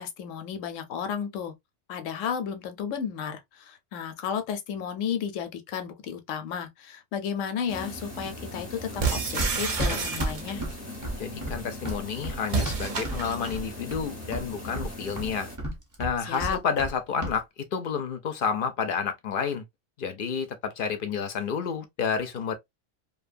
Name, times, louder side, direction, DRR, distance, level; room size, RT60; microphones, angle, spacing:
voice 1, 0.0-1.5 1.9-10.6 16.3-16.6, left 7 dB, 85° left, 1.0 m, -33 dB
sound 1, 7.7-15.6, left 1 dB, 15° left, 0.6 m, -40 dB
Run, 9.0-13.2 13.5-14.1 14.3-16.9 17.2-17.4, right 1 dB, 20° right, 0.7 m, -32 dB
sound 2, 9.0-10.7 12.4-13.6, right 5 dB, 45° right, 0.4 m, -29 dB
voice 2, 11.2-15.5 16.0-17.5 17.7-19.6 20.0-22.6, left 6 dB, 60° left, 0.6 m, -30 dB
2.7 x 2.3 x 2.4 m
omnidirectional pair, 1.3 m